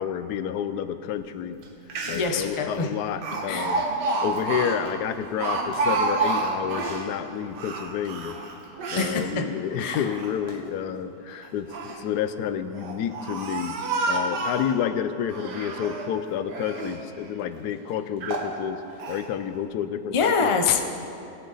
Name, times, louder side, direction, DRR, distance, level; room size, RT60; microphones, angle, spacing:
voice 1, 0.0-1.6 2.1-3.9 4.2-8.4 8.9-13.8 14.1-18.8 19.1-20.6, left 9 dB, 75° left, 11 dB, 1.1 m, -30 dB
Speech, 1.6-1.7 1.9-2.4 3.2-7.1 7.5-9.2 9.7-10.5 11.4-12.0 12.7-14.7 15.3-16.1 16.5-17.0 17.6-17.7 18.2-18.5 19.0-19.2, right 3 dB, 90° right, 1.8 m, -29 dB
voice 2, 2.1-2.9 3.5-3.9 9.0-9.4 9.8-10.1 11.3-11.5 20.1-20.8, left 5 dB, 50° left, 4 dB, 0.3 m, -25 dB
19.5 x 7.5 x 4.0 m, 2.6 s
omnidirectional pair, 1.7 m